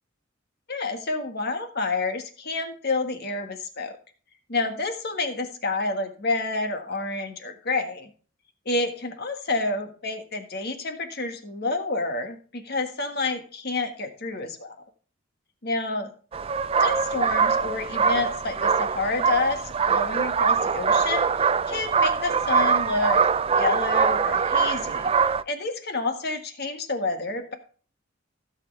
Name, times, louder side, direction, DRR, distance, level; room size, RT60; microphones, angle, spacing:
voice 1, 0.7-4.0 4.5-8.1 8.6-14.7 15.6-16.1 16.8-23.2 23.6-25.1 25.4-27.5, left 3 dB, 55° left, 6 dB, 1.7 m, -29 dB
sound 1, 16.3-25.4, right 6 dB, 30° right, 0.4 m, -23 dB
16.5 x 6.7 x 3.3 m, 0.40 s
head